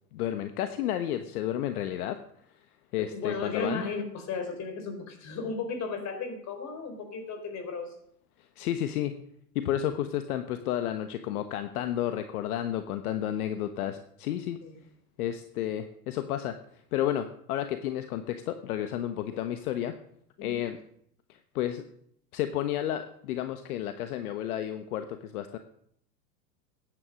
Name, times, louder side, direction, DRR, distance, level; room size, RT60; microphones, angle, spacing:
voice 1, 0.1-2.2 2.9-3.8 8.6-9.1 9.5-14.6 15.2-16.6 16.9-20.0 20.4-20.8 21.5-21.8 22.3-25.6, left 11 dB, 60° left, 9 dB, 1.3 m, -31 dB
voice 2, 3.0-7.9 14.6-14.7 20.4-20.6, left 4 dB, 35° left, 7 dB, 3.9 m, -35 dB
15.0 x 9.9 x 6.3 m, 0.69 s
hypercardioid pair, 115°, 49 cm